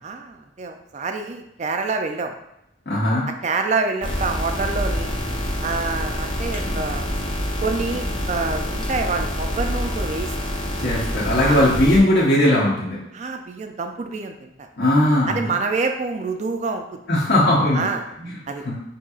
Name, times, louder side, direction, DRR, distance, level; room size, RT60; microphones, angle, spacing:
voice 1, 0.0-2.3 3.4-5.1 5.6-7.1 7.6-10.3 11.4-11.7 13.1-14.7 15.3-17.0 17.7-18.1 18.5-18.6, right 4 dB, 40° right, 5 dB, 0.4 m, -27 dB
voice 2, 2.9-3.2 10.8-13.0 14.8-15.5 17.1-17.8 18.2-18.4 18.6-18.8, left 1 dB, 60° left, -8 dB, 0.8 m, -18 dB
sound 1, 4.0-12.0, equal, 25° left, 0.6 m, -26 dB
5.2 x 2.7 x 2.4 m, 0.82 s
head